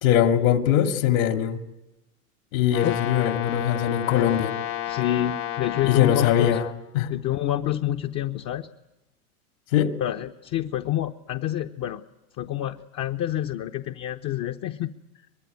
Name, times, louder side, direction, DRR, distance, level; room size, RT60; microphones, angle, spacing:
voice 1, 0.0-1.6 2.5-4.5 5.8-6.6 6.9-7.1 9.7-9.9, left 10 dB, 65° left, 6 dB, 2.4 m, -21 dB
Brass instrument, 2.7-6.8, left 12 dB, 85° left, 2.8 m, -31 dB
voice 2, 4.9-6.6 7.1-8.7 10.0-12.0 12.4-14.9, left 12 dB, 40° left, 5 dB, 0.9 m, -27 dB
23.0 x 22.0 x 9.5 m, 0.98 s
hypercardioid pair, 105°, 44 cm